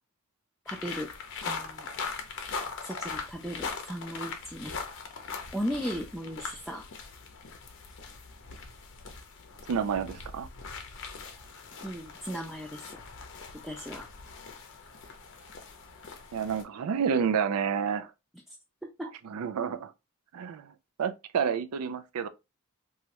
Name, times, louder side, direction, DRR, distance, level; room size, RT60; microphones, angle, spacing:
sound 1, 0.7-16.6, left 5 dB, 55° left, 0.6 m, -41 dB
voice 1, 0.7-1.1 1.4-1.9 2.8-4.8 5.5-6.9 11.8-13.1 13.6-14.1 19.0-19.1, equal, ahead, 0.3 m, -36 dB
voice 2, 9.7-10.5 16.3-18.1 19.3-19.9 20.3-22.3, right 7 dB, 80° right, 0.4 m, -29 dB
3.0 x 2.3 x 2.8 m
head